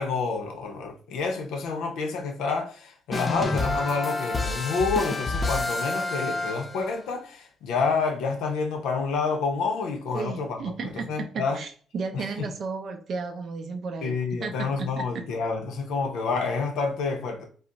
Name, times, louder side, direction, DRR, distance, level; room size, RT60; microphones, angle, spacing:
voice 1, 0.0-11.6 12.1-12.5 14.0-17.5, left 4 dB, 90° left, 0.6 m, -28 dB
sound 1, 3.1-7.0, left 2 dB, 25° left, 0.5 m, -28 dB
voice 2, 10.1-15.2, right 5 dB, 60° right, 0.4 m, -34 dB
2.3 x 2.0 x 3.8 m
cardioid pair, 90°, 0 cm